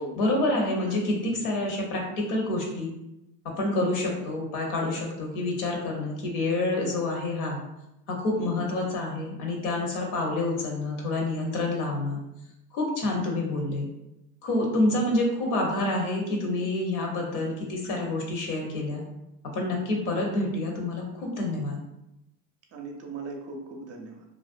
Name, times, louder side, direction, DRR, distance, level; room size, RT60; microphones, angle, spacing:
voice 1, 0.2-2.9 3.4-7.6 8.1-12.2 12.7-13.9 14.4-19.0 19.5-21.8, left 2 dB, 70° left, 0 dB, 0.9 m, -28 dB
voice 2, 22.7-24.2, right 3 dB, 40° right, 1 dB, 0.5 m, -39 dB
2.4 x 2.0 x 2.5 m, 0.89 s
supercardioid pair, 90°, 43 cm